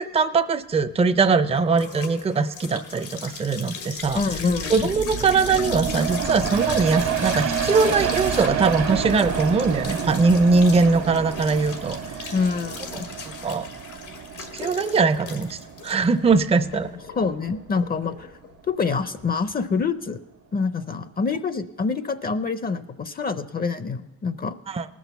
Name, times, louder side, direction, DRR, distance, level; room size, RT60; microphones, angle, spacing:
voice 1, 0.0-4.2 4.7-12.3 12.9-13.7 14.5-16.9 24.7-24.9, right 4 dB, 20° right, 11 dB, 0.5 m, -21 dB
sound 1, 0.8-19.8, left 6 dB, 90° left, 1.8 m, -38 dB
voice 2, 4.1-4.7 12.3-13.1 17.2-18.3 18.7-20.2 20.5-24.5, left 4 dB, 30° left, 12 dB, 0.6 m, -26 dB
sound 2, 4.2-17.3 17.7-17.8, right 7 dB, 65° right, 1.2 m, -29 dB
18.5 x 6.2 x 6.9 m, 1.1 s
cardioid pair, 90°, 30 cm